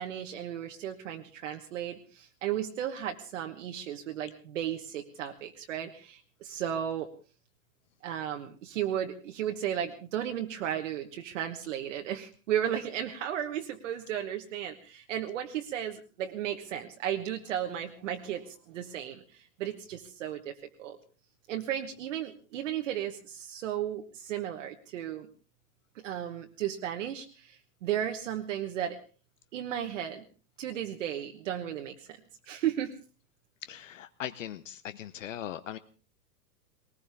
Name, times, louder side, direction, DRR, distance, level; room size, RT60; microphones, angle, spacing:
voice 1, 0.0-7.1 8.0-21.0 21.5-25.3 25.9-29.0 29.5-30.2 30.6-32.2 32.5-32.9, right 10 dB, 50° right, 4 dB, 1.3 m, -34 dB
voice 2, 33.7-35.8, left 10 dB, 50° left, 14 dB, 0.8 m, -39 dB
20.5 x 19.5 x 3.5 m, 0.36 s
supercardioid pair, 170°, 48 cm